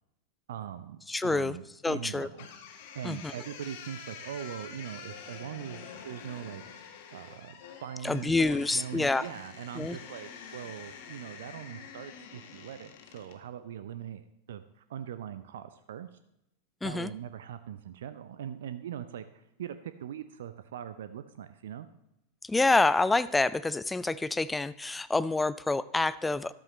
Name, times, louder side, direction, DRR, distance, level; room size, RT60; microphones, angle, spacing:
voice 1, 0.5-2.5 2.9-6.6 7.1-16.1 16.8-21.9, right 9 dB, 60° right, 12 dB, 0.5 m, -41 dB
voice 2, 1.1-1.6 1.8-2.3 3.0-3.3 8.0-9.3 9.8-10.0 16.8-17.1 22.4-26.5, left 3 dB, 10° left, 16 dB, 0.4 m, -27 dB
sound 1, 2.4-13.4, left 7 dB, 50° left, 1.5 m, -47 dB
13.0 x 12.5 x 3.1 m, 0.84 s
figure-of-eight pair, 90°, 0 cm